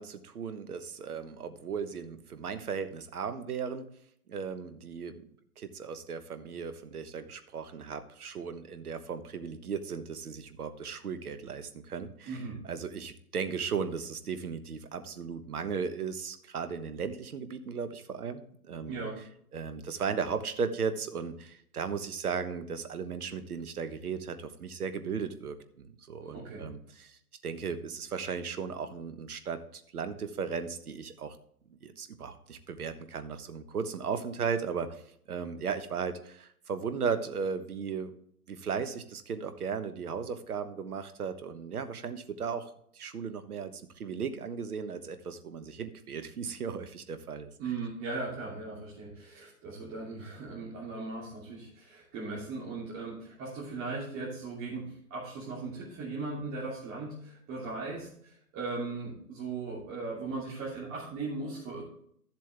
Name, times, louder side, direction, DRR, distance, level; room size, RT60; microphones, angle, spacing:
voice 1, 0.0-3.9 4.3-5.3 5.6-12.4 12.6-18.9 19.5-27.2 27.4-31.4 31.8-35.0 35.3-38.1 38.5-47.5, right 6 dB, 75° right, 10 dB, 1.3 m, -36 dB
voice 2, 12.2-12.6 18.9-19.2 26.2-26.6 47.6-61.8, right 3 dB, 30° right, -7 dB, 3.0 m, -38 dB
13.5 x 7.5 x 3.5 m, 0.66 s
figure-of-eight pair, 125°, 45 cm